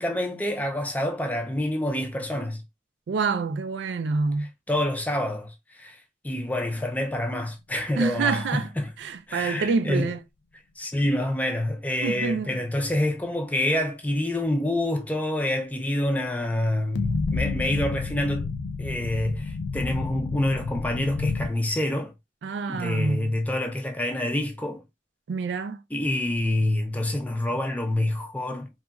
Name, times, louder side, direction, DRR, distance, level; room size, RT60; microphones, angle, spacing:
voice 1, 0.0-2.6 4.7-8.9 9.3-10.1 10.8-18.5 18.8-22.1 22.7-24.8 25.9-28.7, left 1 dB, 10° left, 0.4 m, -27 dB
voice 2, 3.1-4.5 8.0-8.7 9.0-10.2 12.0-12.5 22.4-23.3 25.3-25.8, right 4 dB, 85° right, 0.4 m, -27 dB
sound 1, 17.0-21.5, left 4 dB, 80° left, 0.4 m, -29 dB
2.9 x 2.4 x 2.3 m
head